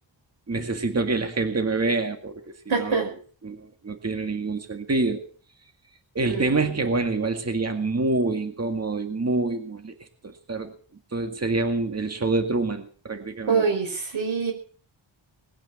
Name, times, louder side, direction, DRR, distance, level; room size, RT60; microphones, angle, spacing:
voice 1, 0.5-3.1 3.4-5.2 6.2-9.9 10.2-10.8 11.1-13.7, right 3 dB, 30° right, 6 dB, 2.0 m, -26 dB
voice 2, 2.7-3.1 6.3-6.7 13.5-14.5, right 5 dB, 75° right, 3 dB, 5.3 m, -25 dB
20.5 x 9.1 x 7.1 m, 0.43 s
wide cardioid pair, 125°, 47 cm